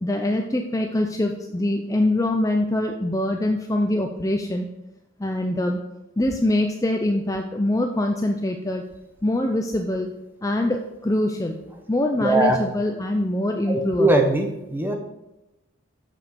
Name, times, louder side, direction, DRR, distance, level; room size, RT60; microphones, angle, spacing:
voice 1, 0.0-4.7 5.2-5.8 6.2-8.8 9.2-10.1 10.4-11.6 11.9-14.1, left 1 dB, 15° left, 3 dB, 0.5 m, -24 dB
voice 2, 12.2-12.6 13.7-14.9, right 2 dB, 10° right, 3 dB, 1.0 m, -20 dB
7.2 x 5.7 x 5.9 m, 0.93 s
head